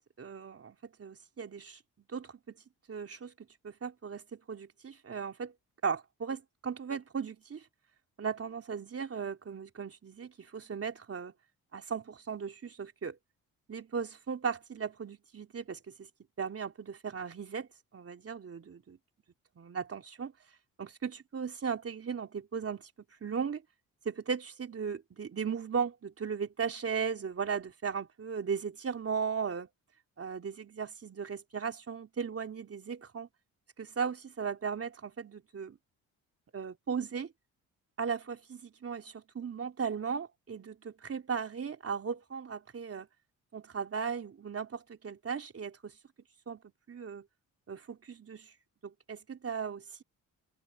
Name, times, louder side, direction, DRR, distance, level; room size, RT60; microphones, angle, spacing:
voice 1, 0.0-1.8 2.1-2.5 2.9-5.5 5.8-7.7 8.2-11.3 11.7-13.2 13.7-16.1 16.4-19.0 19.6-20.3 20.8-22.9 23.2-23.6 24.1-29.7 30.2-33.3 33.8-35.8 36.5-37.3 38.0-43.1 43.5-45.9 46.5-46.6 46.9-47.3 47.7-48.5 48.8-50.0, right 6 dB, 45° right, 3.6 m, -37 dB
open air
cardioid pair, 80°, 34 cm